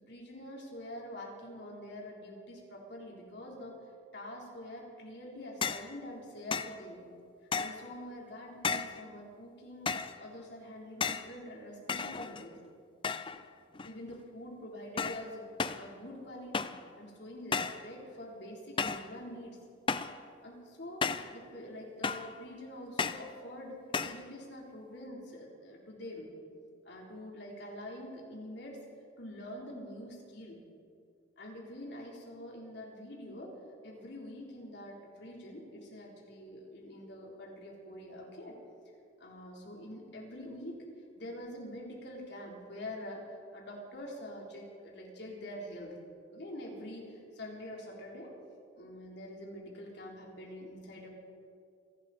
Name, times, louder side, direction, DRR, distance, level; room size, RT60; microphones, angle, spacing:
voice 1, 0.0-3.7 4.1-7.1 7.6-9.9 10.2-12.5 13.8-15.5 15.8-19.6 20.4-21.0 21.3-26.3 26.8-28.8 29.2-30.6 31.4-33.5 33.8-38.6 39.2-40.8 41.2-45.9 46.3-48.3 48.7-51.1, left 1 dB, 60° left, -2 dB, 3.7 m, -45 dB
sound 1, 5.6-5.9 6.5-6.8 7.5-7.9 8.6-9.0 9.9-10.2 11.0-11.3 11.9-12.5 13.0-13.4 13.7-14.2 15.0-15.3 15.6-15.9 16.5-16.9 17.5-17.9 18.8-19.1 19.9-20.2 21.0-21.4 22.0-22.4 23.0-23.3 23.9-24.2, left 5 dB, 25° left, 0.4 m, -34 dB
28.0 x 12.0 x 4.2 m, 2.3 s
head